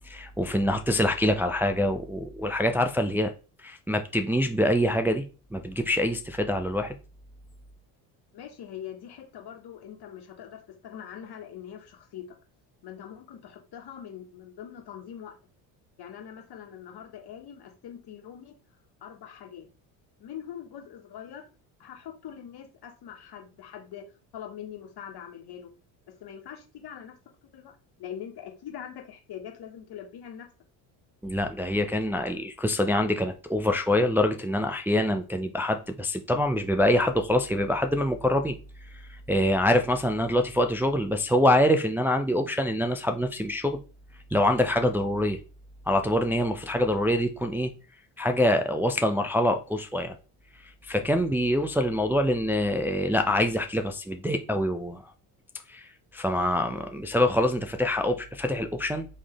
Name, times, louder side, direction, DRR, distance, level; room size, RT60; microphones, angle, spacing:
voice 1, 0.0-3.3 3.6-5.2 5.5-6.9 31.2-38.6 38.9-43.8 44.3-45.4 45.9-47.7 48.2-50.2 50.6-55.0 55.7-59.1, left 1 dB, 5° right, 0.4 m, -25 dB
voice 2, 8.3-12.2 12.8-15.3 16.0-18.6 19.0-19.7 20.2-21.4 21.8-24.1 24.3-25.7 26.2-27.1 27.5-30.5, left 9 dB, 50° left, 1.6 m, -43 dB
3.8 x 3.2 x 3.5 m
hypercardioid pair, 60°, 50 cm